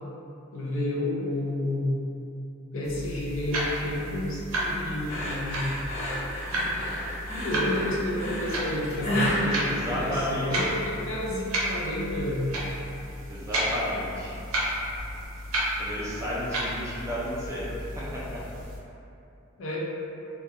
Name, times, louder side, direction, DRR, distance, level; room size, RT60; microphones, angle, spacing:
voice 1, 0.5-2.0 2.7-5.7 7.4-9.7 9.9-12.5 19.6-19.8, left 1 dB, 65° left, -5 dB, 0.5 m, -30 dB
sound 1, 2.8-18.8, right 1 dB, 75° right, 0.5 m, -33 dB
sound 2, 5.1-10.6, equal, 30° left, 0.7 m, -31 dB
voice 2, 9.7-10.7 13.3-14.4 15.8-17.7 18.0-18.4, left 1 dB, 15° right, -8 dB, 0.4 m, -32 dB
2.3 x 2.2 x 2.7 m, 2.7 s
head